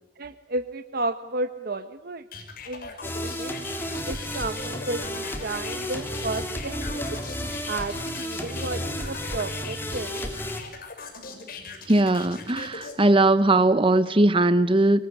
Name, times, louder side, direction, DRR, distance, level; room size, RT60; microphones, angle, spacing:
voice 1, 0.2-2.2 2.6-2.9 3.2-3.6 4.0-7.2 7.7-10.3, right 2 dB, 60° right, 9 dB, 1.2 m, -32 dB
sound 1, 2.3-12.9, left 4 dB, 55° left, 6.1 m, -40 dB
sound 2, 3.0-10.6, left 1 dB, 15° left, 3.8 m, -32 dB
voice 2, 11.9-15.1, right 2 dB, 30° right, 12 dB, 1.0 m, -19 dB
25.5 x 23.0 x 9.9 m, 0.88 s
head